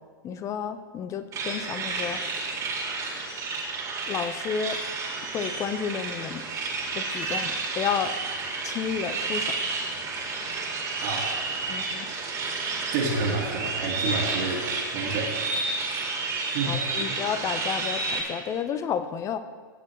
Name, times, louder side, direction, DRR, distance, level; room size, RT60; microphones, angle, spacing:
voice 1, 0.2-2.2 4.1-4.8 5.3-6.4 6.9-8.1 8.6-9.6 11.7-12.1 16.7-19.4, left 7 dB, 30° left, 11 dB, 0.7 m, -31 dB
sound 1, 1.3-18.2, right 3 dB, 25° right, 2.2 m, -31 dB
voice 2, 10.9-11.8 12.9-15.4 15.9-16.2 16.5-17.1, right 3 dB, 50° right, 0 dB, 2.0 m, -30 dB
16.0 x 7.6 x 3.2 m, 1.5 s
hypercardioid pair, 105°, 11 cm